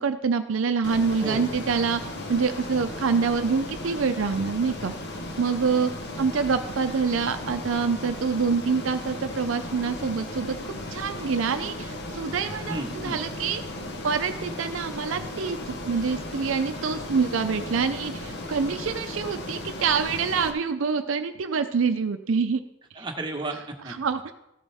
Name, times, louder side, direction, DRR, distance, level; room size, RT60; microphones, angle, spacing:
voice 1, 0.0-2.0 2.3-4.9 5.4-5.9 6.2-13.6 14.0-22.6 24.0-24.3, right 5 dB, 75° right, 8 dB, 0.5 m, -26 dB
Ocean, 0.8-20.5, left 1 dB, 55° left, 1.0 m, -36 dB
voice 2, 1.2-1.6 12.7-13.2 22.9-24.0, right 2 dB, 20° right, 1 dB, 1.2 m, -33 dB
14.5 x 7.2 x 3.5 m, 0.86 s
head